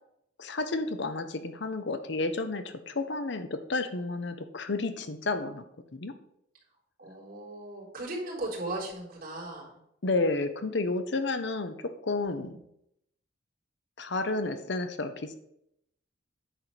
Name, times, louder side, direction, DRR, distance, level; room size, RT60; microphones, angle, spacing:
voice 1, 0.4-5.6 5.9-6.1 10.0-12.6 14.0-15.4, left 3 dB, 60° left, 9 dB, 0.8 m, -31 dB
voice 2, 7.0-9.8 12.2-12.6, right 2 dB, 45° right, -4 dB, 3.9 m, -37 dB
10.0 x 4.4 x 6.9 m, 0.77 s
head